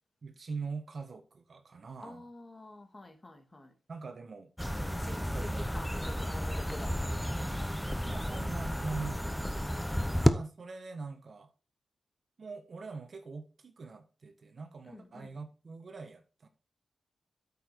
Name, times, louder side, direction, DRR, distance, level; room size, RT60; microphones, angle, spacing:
voice 1, 0.2-2.3 3.9-4.5 5.0-5.6 8.0-9.5 10.2-11.5 12.4-16.5, right 4 dB, 50° right, 1.4 m, -43 dB
voice 2, 2.0-3.7 4.9-7.7 9.7-10.2 14.8-15.3, left 2 dB, 25° left, 2.7 m, -49 dB
sound 1, 4.6-10.3, equal, 5° left, 0.8 m, -32 dB
8.8 x 7.0 x 4.6 m
cardioid pair, 80°, 0 cm